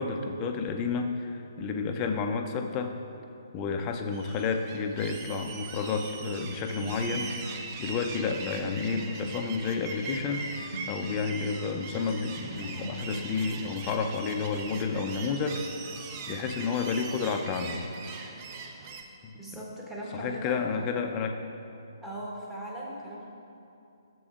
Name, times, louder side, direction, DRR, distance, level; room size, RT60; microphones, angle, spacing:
voice 1, 0.0-2.9 3.5-15.6 16.3-17.8 19.2-19.3 20.1-21.3, left 5 dB, 25° left, 5 dB, 0.5 m, -31 dB
sound 1, 4.1-19.0, right 4 dB, 30° right, 0.5 m, -41 dB
sound 2, 6.6-18.5 18.7-19.2, left 1 dB, 85° right, 1.4 m, -44 dB
voice 2, 19.3-21.0 22.0-23.2, right 1 dB, 5° right, -5 dB, 1.1 m, -39 dB
12.0 x 6.9 x 2.4 m, 2.7 s
figure-of-eight pair, 135°, 2 cm